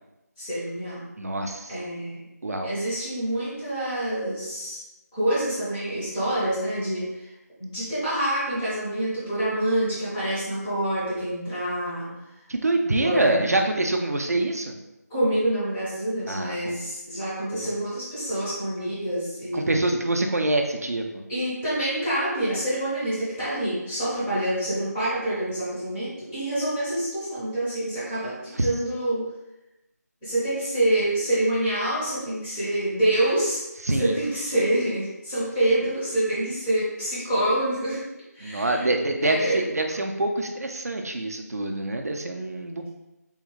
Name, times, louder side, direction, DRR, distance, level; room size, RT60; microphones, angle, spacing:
voice 1, 0.4-1.0 1.7-2.2 2.6-4.8 5.1-7.3 7.6-12.1 13.0-13.5 15.1-19.8 21.3-29.3 30.2-33.6 33.9-38.0 38.3-38.8 39.2-39.6, right 1 dB, 5° left, -11 dB, 0.5 m, -26 dB
voice 2, 1.2-1.7 2.4-2.7 12.5-14.7 16.3-16.8 19.5-21.1 28.6-28.7 33.9-34.1 38.4-42.9, right 2 dB, 65° right, 4 dB, 0.5 m, -25 dB
3.5 x 2.4 x 3.0 m, 0.96 s
figure-of-eight pair, 165°, 9 cm